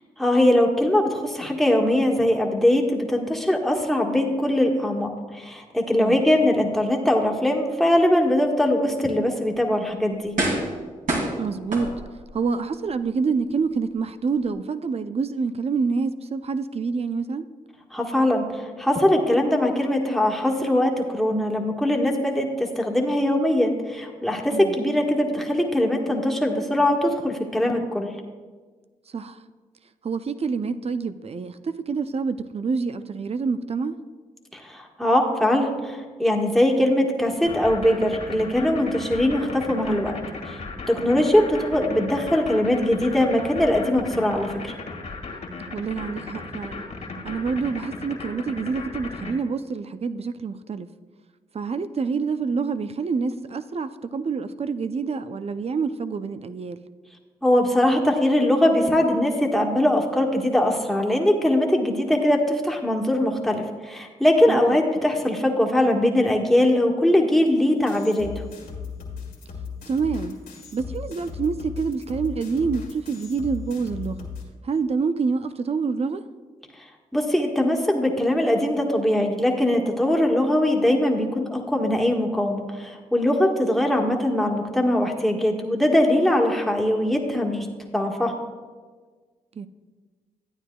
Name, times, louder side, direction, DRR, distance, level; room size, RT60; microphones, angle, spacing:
voice 1, 0.2-10.3 17.9-28.1 34.5-40.1 40.4-40.6 40.9-44.7 57.4-68.4 77.1-87.7 87.9-88.3, left 1 dB, ahead, 0 dB, 1.5 m, -21 dB
sound 1, 9.4-9.6 10.3-10.8 11.1-12.3 12.8-12.9, right 1 dB, 65° right, 2.5 m, -26 dB
voice 2, 11.4-11.9 12.3-17.4 24.5-24.7 29.1-29.4 30.0-34.0 41.1-41.2 45.7-46.8 47.2-50.9 51.5-56.8 64.5-64.8 69.9-70.4 70.7-74.3 74.6-76.2 89.6-89.7, right 5 dB, 45° right, 12 dB, 0.5 m, -27 dB
sound 2, 37.5-49.3, left 3 dB, 55° left, 1.9 m, -36 dB
sound 3, 67.9-74.4, left 6 dB, 80° left, 1.9 m, -37 dB
12.5 x 9.1 x 2.3 m, 1.5 s
supercardioid pair, 45°, 15 cm